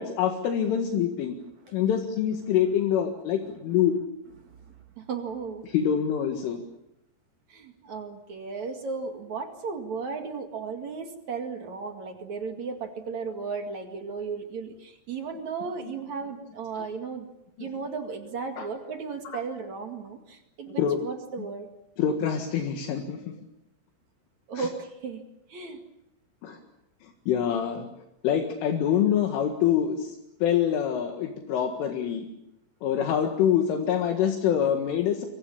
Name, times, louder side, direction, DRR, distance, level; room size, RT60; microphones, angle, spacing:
voice 1, 0.0-1.4 1.7-3.9 5.6-6.6 18.6-18.7 19.3-19.4 20.8-21.0 22.0-23.3 24.6-24.7 26.4-26.6 27.0-27.9 28.2-32.3 32.8-35.3, left 9 dB, 75° left, 4 dB, 4.2 m, -25 dB
voice 2, 4.4-5.7 7.5-17.3 17.6-21.7 24.5-25.2 25.5-25.8, right 5 dB, 50° right, 5 dB, 2.5 m, -35 dB
28.0 x 23.5 x 7.2 m, 0.84 s
omnidirectional pair, 5.9 m